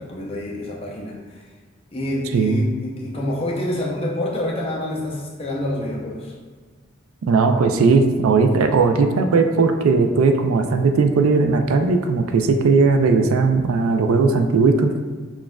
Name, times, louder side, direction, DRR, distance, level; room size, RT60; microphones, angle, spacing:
voice 1, 0.0-1.4 1.9-6.3, left 1 dB, 30° left, -2 dB, 0.5 m, -27 dB
voice 2, 2.3-2.6 7.2-14.9, right 4 dB, 85° right, 6 dB, 0.4 m, -17 dB
6.1 x 2.4 x 2.2 m, 1.5 s
head